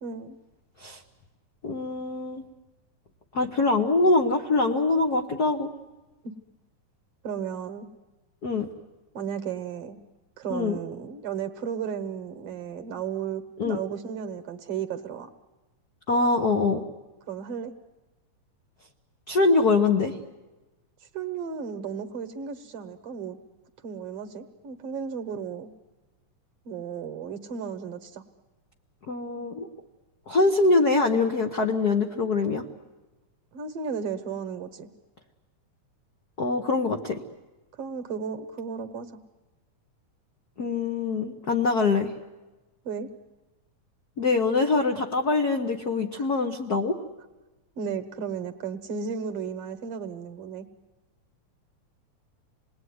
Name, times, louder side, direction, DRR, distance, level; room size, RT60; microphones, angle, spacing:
voice 1, 0.0-0.4 6.2-6.3 7.2-7.9 9.1-10.0 10.4-15.3 17.3-17.7 21.0-23.4 23.8-25.7 26.7-28.2 33.5-34.9 37.7-39.2 42.8-43.1 46.2-46.3 47.8-50.7, right 7 dB, 60° right, 8 dB, 1.8 m, -34 dB
voice 2, 1.6-2.4 3.3-5.7 8.4-8.7 10.5-10.8 13.6-13.8 16.1-16.8 19.3-20.2 29.1-29.7 30.3-32.6 36.4-37.2 40.6-42.1 44.2-47.0, left 3 dB, 70° left, 4 dB, 0.9 m, -23 dB
27.5 x 20.0 x 9.5 m, 1.1 s
omnidirectional pair, 3.5 m